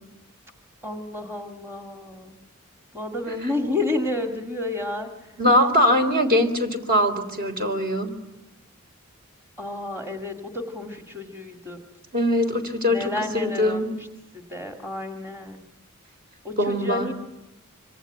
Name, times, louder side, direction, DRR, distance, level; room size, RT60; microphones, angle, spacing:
voice 1, 0.8-2.3 2.9-5.1 9.6-11.8 12.9-13.8 14.3-15.6 16.4-17.1, left 2 dB, 10° right, 3 dB, 2.0 m, -30 dB
voice 2, 5.4-8.1 12.1-13.9 16.6-17.1, left 1 dB, 45° right, 5 dB, 3.9 m, -22 dB
26.0 x 25.5 x 9.1 m, 0.96 s
head